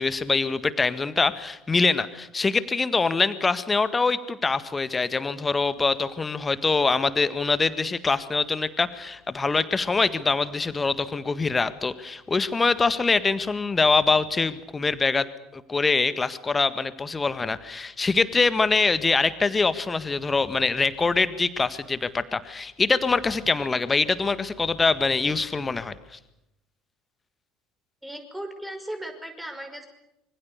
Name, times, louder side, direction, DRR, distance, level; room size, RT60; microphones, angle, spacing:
voice 1, 0.0-15.3 15.5-25.9, left 4 dB, 20° left, 13 dB, 1.7 m, -24 dB
voice 2, 28.0-29.9, right 1 dB, 5° right, 6 dB, 5.5 m, -36 dB
26.0 x 24.5 x 6.8 m, 0.87 s
figure-of-eight pair, 65°, 0 cm